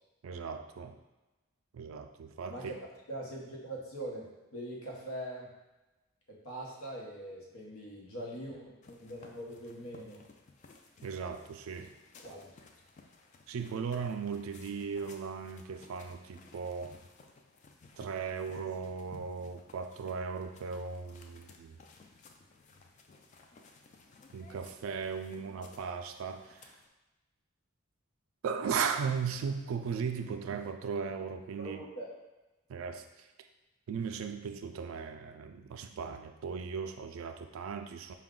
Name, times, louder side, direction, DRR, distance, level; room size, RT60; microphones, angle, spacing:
voice 1, 0.2-1.0 1.7-2.8 11.0-11.9 13.5-16.9 18.0-21.8 24.3-26.8 28.4-31.9 32.7-33.3 33.9-38.1, right 6 dB, 80° right, 7 dB, 0.3 m, -37 dB
voice 2, 3.1-5.5 6.3-10.2 12.2-12.5 31.6-32.1, right 1 dB, 90° left, -2 dB, 0.9 m, -42 dB
sound 1, 8.8-26.9, left 3 dB, 35° left, 0.3 m, -58 dB
4.7 x 2.2 x 3.7 m, 1.1 s
head